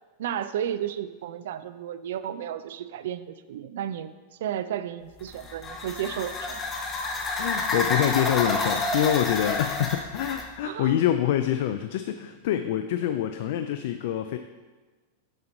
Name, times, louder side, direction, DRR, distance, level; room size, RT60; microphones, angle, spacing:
voice 1, 0.2-4.1 4.4-6.7 10.6-11.0, right 10 dB, 75° right, 13 dB, 0.4 m, -33 dB
sound 1, 5.2-10.5, left 2 dB, 20° left, 0.7 m, -29 dB
voice 2, 7.4-14.4, left 11 dB, 65° left, 9 dB, 0.3 m, -26 dB
7.7 x 3.0 x 5.2 m, 1.3 s
supercardioid pair, 150°, 0 cm